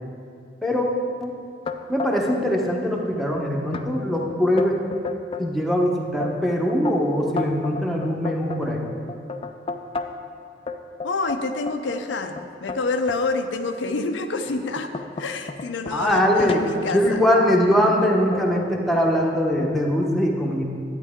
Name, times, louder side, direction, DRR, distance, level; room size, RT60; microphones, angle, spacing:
voice 1, 0.6-0.9 1.2-1.4 1.9-4.8 5.4-8.9 15.9-16.6 16.9-20.6, equal, ahead, -2 dB, 0.9 m, -22 dB
sound 1, 1.7-2.6 2.9-3.4 3.7-3.9 4.3-5.5 6.0-10.3 10.7-13.2 13.8-14.0 14.5-17.5 18.3-18.7 19.0-19.7, left 3 dB, 30° left, 0.4 m, -33 dB
voice 2, 11.0-17.2, left 3 dB, 90° left, 6 dB, 0.6 m, -28 dB
11.0 x 8.9 x 3.7 m, 2.5 s
head